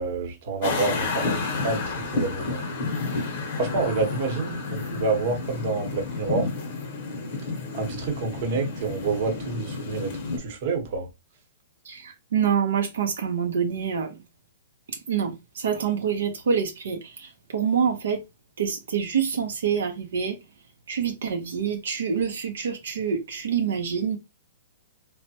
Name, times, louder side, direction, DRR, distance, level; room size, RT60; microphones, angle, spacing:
voice 1, 0.0-2.6 3.6-6.5 7.7-10.1 10.4-11.1, right 3 dB, 45° right, 0.9 m, -28 dB
sound 1, 0.6-10.4, left 3 dB, 40° left, 0.8 m, -30 dB
voice 2, 11.9-14.1 15.1-18.2 18.6-20.4 20.9-24.2, right 7 dB, 80° right, 0.5 m, -26 dB
3.2 x 2.1 x 2.7 m
hypercardioid pair, 165°, 0 cm